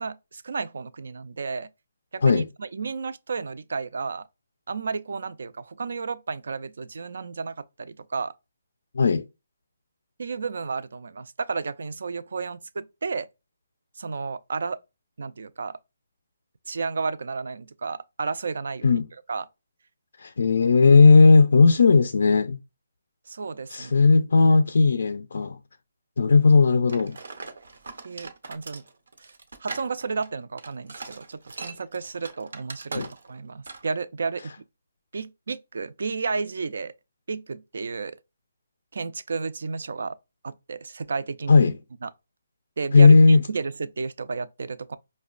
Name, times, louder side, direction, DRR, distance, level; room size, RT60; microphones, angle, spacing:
voice 1, 0.0-1.7 2.1-4.3 4.7-8.3 10.2-13.3 14.0-14.8 15.2-15.8 16.7-19.0 19.3-19.5 23.3-23.9 28.0-28.8 29.2-29.3 29.6-34.5 35.1-36.9 37.3-38.2 38.9-40.2 40.4-41.7 42.0-42.1 42.8-45.0, right 4 dB, 65° right, 0.3 m, -32 dB
voice 2, 20.2-22.6 23.7-25.6 26.2-27.2 32.9-33.1 41.5-41.8 42.9-43.4, left 4 dB, 65° left, 0.3 m, -16 dB
sound 1, 26.9-33.4 33.7-33.9, right 3 dB, 85° right, 0.7 m, -40 dB
5.1 x 2.1 x 2.4 m
hypercardioid pair, 170°, 0 cm